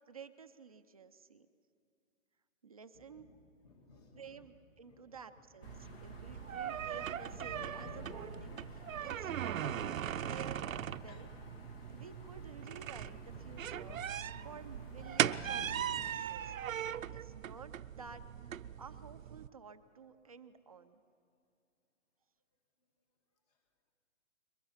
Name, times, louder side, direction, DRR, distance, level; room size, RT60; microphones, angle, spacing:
voice 1, 0.1-1.5 2.6-3.3 4.1-9.8 10.2-11.3 11.9-14.0 14.4-16.5 17.1-18.2 18.8-21.0, right 6 dB, 30° right, 9 dB, 0.5 m, -52 dB
voice 2, 2.9-3.4 3.6-4.5 4.8-5.2 5.6-6.8 16.4-16.5, left 2 dB, 30° left, 4 dB, 2.2 m, -63 dB
sound 1, 5.6-16.2, left 3 dB, 45° left, 1.9 m, -52 dB
sound 2, 5.6-19.5, right 10 dB, 85° right, 0.7 m, -39 dB
23.0 x 20.5 x 5.7 m, 2.4 s
hypercardioid pair, 170°, 39 cm